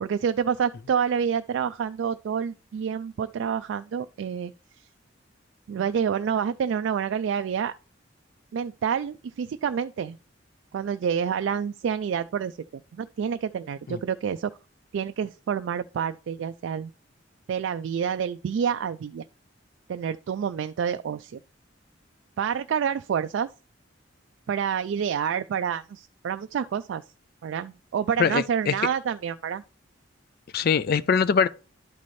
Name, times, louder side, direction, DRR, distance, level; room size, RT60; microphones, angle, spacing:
voice 1, 0.0-4.9 5.7-7.7 8.5-10.2 10.7-14.5 14.9-16.9 17.5-19.2 19.9-21.4 22.4-23.5 24.5-27.0 27.4-29.6, right 7 dB, 75° right, 0.3 m, -28 dB
voice 2, 28.2-28.7 30.5-31.5, left 6 dB, 50° left, 0.4 m, -22 dB
11.5 x 4.2 x 3.1 m
head